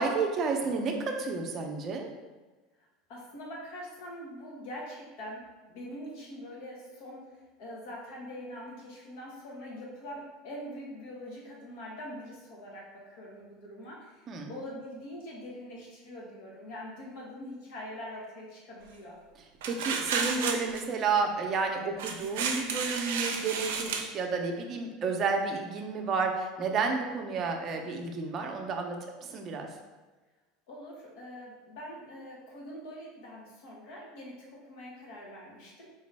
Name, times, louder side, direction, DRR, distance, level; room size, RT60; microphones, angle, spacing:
voice 1, 0.0-2.1 14.3-14.5 19.6-29.7, right 4 dB, 40° right, 3 dB, 0.6 m, -31 dB
voice 2, 3.1-19.2 30.7-35.9, equal, 70° left, -3 dB, 1.2 m, -44 dB
sound 1, 19.6-20.8 22.0-24.0, right 5 dB, 85° right, 0.5 m, -32 dB
3.8 x 3.0 x 3.3 m, 1.2 s
supercardioid pair, 115°, 0 cm